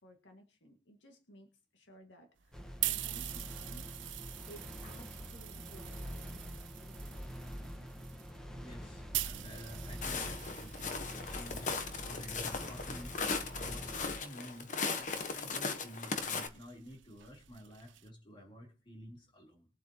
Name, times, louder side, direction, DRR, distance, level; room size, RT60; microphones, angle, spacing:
voice 1, 0.0-3.9 4.5-7.2, equal, 80° left, 4 dB, 2.0 m, -57 dB
sound 1, 2.4-13.8 14.6-18.1, right 14 dB, 85° right, 0.6 m, -44 dB
sound 2, 2.5-14.1, equal, 5° left, 1.3 m, -46 dB
voice 2, 8.5-14.7 15.0-19.7, equal, 30° left, -1 dB, 3.7 m, -51 dB
Walk footsteps, 10.0-16.5, left 4 dB, 45° left, 1.1 m, -38 dB
22.0 x 7.7 x 2.9 m, 0.36 s
head